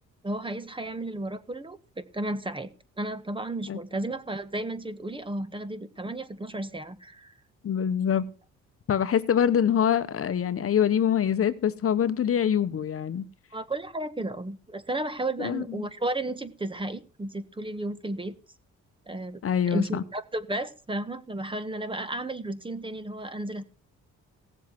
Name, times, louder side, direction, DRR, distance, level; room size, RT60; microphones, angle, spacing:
voice 1, 0.2-2.7 3.0-7.3 13.5-18.4 19.1-19.4 19.7-23.6, right 1 dB, 15° right, 1.5 m, -33 dB
voice 2, 7.6-8.3 8.9-13.3 15.4-15.9 19.4-20.0, left 8 dB, 50° left, 1.1 m, -25 dB
17.0 x 7.4 x 6.0 m
cardioid pair, 90°, 30 cm